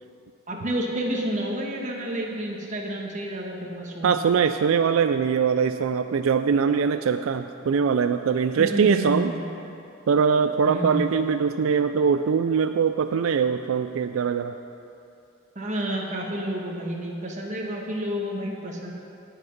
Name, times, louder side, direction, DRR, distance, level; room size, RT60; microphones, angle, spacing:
voice 1, 0.5-4.2 8.6-9.5 10.6-11.1 15.5-18.9, right 1 dB, 35° right, 0 dB, 1.4 m, -30 dB
voice 2, 4.0-9.3 10.1-14.5, right 6 dB, 85° right, 9 dB, 0.4 m, -22 dB
17.5 x 6.0 x 5.3 m, 2.7 s
head